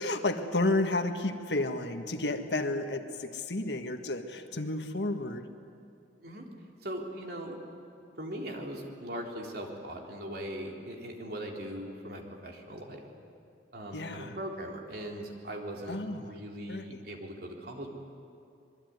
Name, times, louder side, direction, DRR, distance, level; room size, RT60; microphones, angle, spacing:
voice 1, 0.0-5.4 13.9-14.4 15.9-16.3 16.7-17.0, left 2 dB, 80° left, 6 dB, 1.7 m, -31 dB
voice 2, 6.8-7.6 8.2-13.0 13.7-17.9, right 1 dB, 60° right, 1 dB, 3.6 m, -40 dB
26.0 x 22.0 x 9.6 m, 2.4 s
head